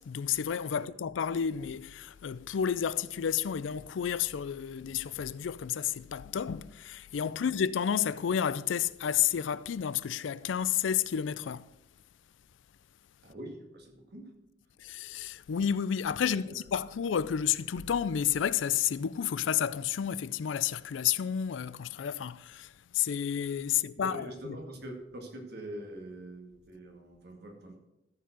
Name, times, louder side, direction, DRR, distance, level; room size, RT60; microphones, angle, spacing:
voice 1, 0.0-11.7 14.8-24.6, left 8 dB, 90° left, 0.4 m, -31 dB
voice 2, 13.2-14.3 16.3-16.5 24.0-27.8, right 1 dB, 60° right, 2.0 m, -44 dB
14.0 x 4.7 x 6.2 m
head